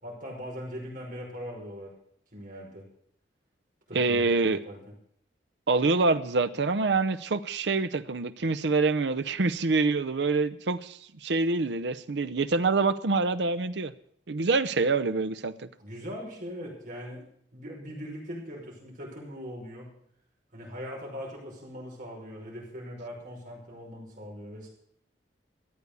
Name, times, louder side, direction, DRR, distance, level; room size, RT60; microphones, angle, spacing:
voice 1, 0.0-1.9 2.3-2.8 3.9-4.8 15.8-17.2 17.5-19.9 20.5-24.7, equal, 50° right, -2 dB, 5.7 m, -40 dB
voice 2, 3.9-4.6 5.7-13.9 14.3-15.7, right 3 dB, 70° right, 11 dB, 0.7 m, -26 dB
14.0 x 8.6 x 8.3 m, 0.67 s
head